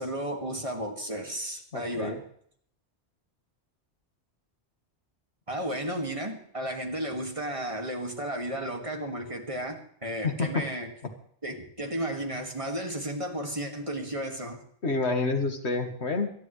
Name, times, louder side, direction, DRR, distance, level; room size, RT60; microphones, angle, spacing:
voice 1, 0.0-2.2 5.5-10.9 11.4-14.6, right 1 dB, 30° right, 2.1 m, -33 dB
voice 2, 1.7-2.2 10.2-10.6 14.8-16.3, left 3 dB, 75° left, 2.1 m, -28 dB
26.0 x 10.5 x 3.2 m
omnidirectional pair, 1.1 m